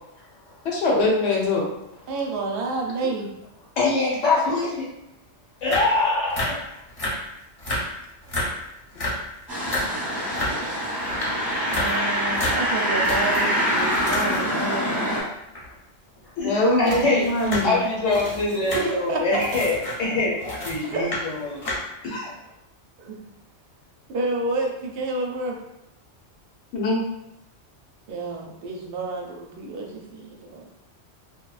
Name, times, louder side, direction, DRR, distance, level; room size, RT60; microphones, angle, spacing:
voice 1, 0.6-1.6 16.4-17.8 26.7-27.0, left 2 dB, 65° left, -2 dB, 0.9 m, -22 dB
voice 2, 2.1-3.3 11.7-15.2 18.8-19.4 20.8-21.1 21.4-21.5 23.0-23.2 24.1-25.5 28.1-30.7, right 3 dB, 60° right, 0 dB, 0.7 m, -29 dB
voice 3, 3.8-4.9 5.6-6.6 16.4-21.6 22.0-22.3, left 2 dB, 90° left, -5 dB, 1.1 m, -24 dB
sound 1, 5.6-6.0 6.2-7.3 7.6-7.9 8.2-8.6 8.9-9.3 9.6-9.9 10.3-10.6 11.0-13.4 13.8-14.6 15.6-15.7 16.2-16.3 16.4-20.8 21.1-21.3 21.6-21.8, left 1 dB, 35° left, 0.7 m, -30 dB
sound 2, 9.5-15.2, equal, 25° right, 0.7 m, -25 dB
2.8 x 2.2 x 2.3 m, 0.85 s
omnidirectional pair, 1.3 m